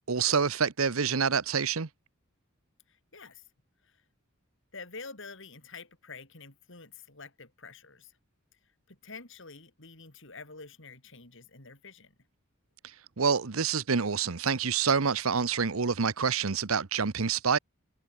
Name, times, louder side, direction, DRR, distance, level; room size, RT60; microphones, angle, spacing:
voice 1, 0.1-1.9 13.2-17.6, right 6 dB, 90° right, 1.0 m, -27 dB
voice 2, 2.9-3.4 3.8-3.9 4.7-8.1 8.9-12.1, left 4 dB, 60° left, 4.9 m, -47 dB
head